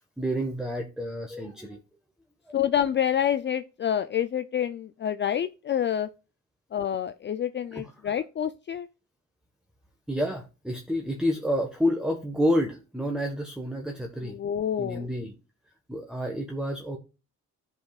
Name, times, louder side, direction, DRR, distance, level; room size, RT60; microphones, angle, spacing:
voice 1, 0.2-1.8 2.4-2.5 7.7-7.9 10.1-14.4 14.8-15.3 15.9-17.0, equal, ahead, 1.3 m, -29 dB
voice 2, 2.5-6.1 6.7-8.9 14.2-15.1, left 9 dB, 40° left, 0.5 m, -27 dB
13.5 x 5.4 x 2.4 m
cardioid pair, 90°, 30 cm